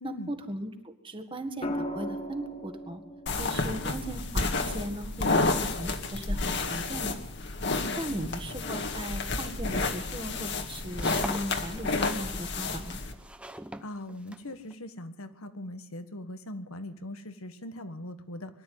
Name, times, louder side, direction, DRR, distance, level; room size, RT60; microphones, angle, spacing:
voice 1, 0.0-3.0 3.4-7.2 8.0-13.0, right 1 dB, 25° right, 7 dB, 1.8 m, -38 dB
sound 1, 1.6-5.7 7.4-7.8, equal, 30° left, 1.4 m, -39 dB
sound 2, 3.3-13.1, left 3 dB, 50° left, 2.0 m, -30 dB
voice 2, 7.8-8.3 13.8-18.6, left 1 dB, 80° left, 9 dB, 1.6 m, -41 dB
sound 3, 10.6-14.7, right 1 dB, 5° right, 0.8 m, -44 dB
23.0 x 12.5 x 9.4 m, 0.88 s
head